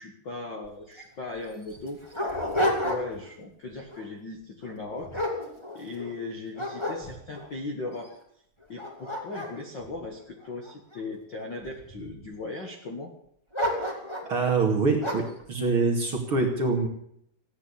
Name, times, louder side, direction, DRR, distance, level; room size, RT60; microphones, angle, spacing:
voice 1, 0.0-2.0 2.8-5.2 5.7-8.1 8.7-13.1, left 3 dB, 75° left, 2 dB, 1.0 m, -38 dB
Dog, 0.6-0.7 1.0-1.1 1.7-3.3 3.7-4.0 4.6-6.1 6.5-7.5 8.1-8.2 8.6-11.0 11.6-12.2 13.5-14.3 15.0-15.4, left 1 dB, 10° left, 2.0 m, -31 dB
voice 2, 14.2-15.2 15.5-16.9, right 4 dB, 40° right, 1 dB, 2.3 m, -24 dB
16.0 x 9.1 x 8.5 m, 0.71 s
omnidirectional pair, 4.9 m